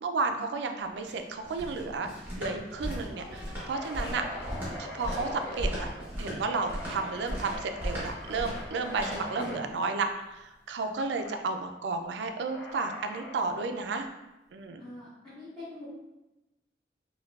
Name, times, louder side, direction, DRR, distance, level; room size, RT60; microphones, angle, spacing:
voice 1, 0.0-2.1 2.4-4.2 4.8-5.9 6.2-14.1 14.5-14.8, right 4 dB, 85° right, 6 dB, 0.3 m, -32 dB
sound 1, 0.8-9.7, equal, 10° right, 0.9 m, -37 dB
sound 2, 2.7-6.0 6.4-9.6 11.0-11.4 12.5-13.4, left 1 dB, 85° left, 0.6 m, -42 dB
voice 2, 14.8-15.9, left 2 dB, 10° left, -15 dB, 1.1 m, -45 dB
4.5 x 2.2 x 2.3 m, 1.0 s
head